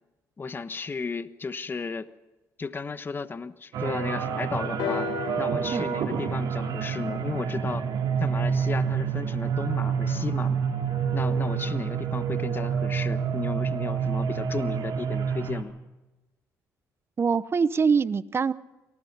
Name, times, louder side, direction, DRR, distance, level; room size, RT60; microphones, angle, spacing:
voice 1, 0.4-2.1 2.6-7.9 8.2-10.6 11.1-15.7, left 4 dB, 30° left, 12 dB, 1.2 m, -34 dB
sound 1, 3.7-15.6, right 7 dB, 75° right, 3.8 m, -28 dB
sound 2, 4.8-8.6 9.5-9.6, left 8 dB, 85° left, 1.4 m, -38 dB
voice 2, 17.2-18.5, right 5 dB, 35° right, 16 dB, 0.8 m, -24 dB
26.5 x 19.0 x 5.5 m, 1.1 s
cardioid pair, 80°, 7 cm